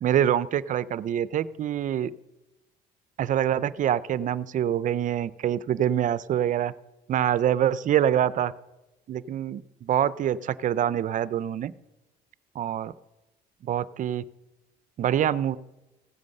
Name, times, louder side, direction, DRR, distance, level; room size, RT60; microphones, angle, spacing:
voice 1, 0.0-2.1 3.2-6.7 7.1-8.5 9.1-11.7 12.6-12.9 13.6-14.2 15.0-15.6, right 10 dB, 50° right, 18 dB, 0.5 m, -25 dB
15.5 x 9.5 x 6.5 m, 1.0 s
cardioid pair, 110°, 17 cm